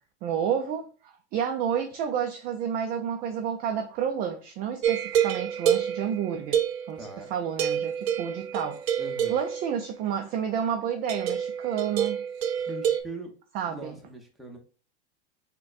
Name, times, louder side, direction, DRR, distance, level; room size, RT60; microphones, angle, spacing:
voice 1, 0.2-6.6 6.9-8.8 9.3-12.2 13.5-14.0, right 8 dB, 30° right, 0.3 m, -30 dB
sound 1, 4.8-7.2 7.6-9.9 11.1-13.0, right 9 dB, 70° right, 0.6 m, -28 dB
voice 2, 7.0-7.3 9.0-9.4 12.7-13.3 13.7-14.6, right 1 dB, ahead, 0.7 m, -41 dB
6.1 x 2.2 x 2.4 m
hypercardioid pair, 120°, 34 cm